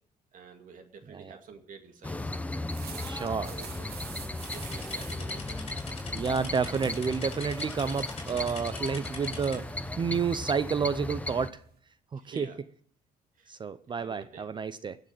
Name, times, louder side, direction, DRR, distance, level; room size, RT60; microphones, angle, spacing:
voice 1, 0.3-2.3 3.2-4.0 4.5-5.6 12.2-12.6 13.4-13.5 14.0-14.5, right 5 dB, 50° right, 2.2 m, -49 dB
voice 2, 1.1-1.4 3.0-3.5 6.1-11.6 12.1-12.5 13.5-15.0, right 6 dB, 30° right, 0.5 m, -30 dB
sound 1, 2.0-11.5, left 2 dB, 10° left, 0.7 m, -36 dB
sound 2, 2.6-11.8, right 7 dB, 70° right, 2.2 m, -50 dB
sound 3, 4.4-9.6, left 4 dB, 35° left, 4.5 m, -45 dB
16.5 x 6.6 x 9.0 m
cardioid pair, 110°, 17 cm